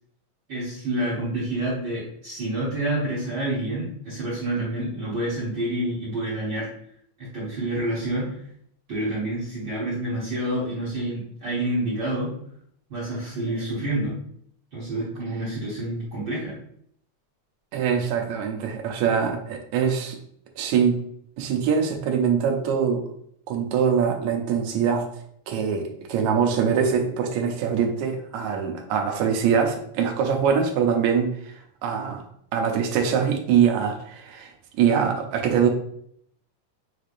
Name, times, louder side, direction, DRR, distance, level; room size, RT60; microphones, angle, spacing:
voice 1, 0.5-6.7 7.2-8.3 8.9-12.3 12.9-14.2 14.7-16.5, right 1 dB, 55° right, -7 dB, 1.2 m, -28 dB
voice 2, 17.7-20.2 20.6-21.0 21.4-23.0 23.5-25.1 25.5-25.8 26.1-31.3 31.8-32.2 32.5-35.7, right 7 dB, 75° right, 3 dB, 1.8 m, -23 dB
6.5 x 3.3 x 2.5 m, 0.67 s
omnidirectional pair, 3.8 m